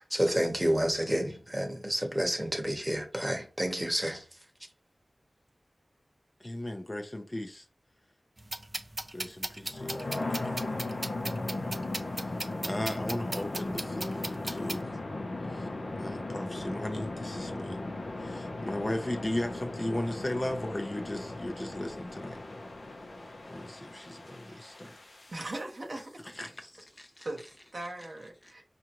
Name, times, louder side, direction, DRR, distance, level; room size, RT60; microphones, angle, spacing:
voice 1, 0.0-4.2, equal, 10° right, 1.0 m, -29 dB
voice 2, 6.4-7.6 9.1-10.4 10.8-10.9 11.4-11.8 12.1-12.4 12.6-14.9 15.5-15.7 16.0-17.8 18.2-22.4 23.5-25.0 26.4-27.3 28.4-28.5, left 1 dB, 30° left, 0.6 m, -36 dB
sound 1, 8.4-14.8, right 1 dB, 35° right, 0.5 m, -38 dB
sound 2, 9.6-25.6, left 2 dB, 70° left, 0.7 m, -37 dB
voice 3, 25.3-26.2 27.2-27.4 27.7-28.6, right 2 dB, 60° right, 0.9 m, -39 dB
4.8 x 2.5 x 2.9 m
wide cardioid pair, 50°, 0 cm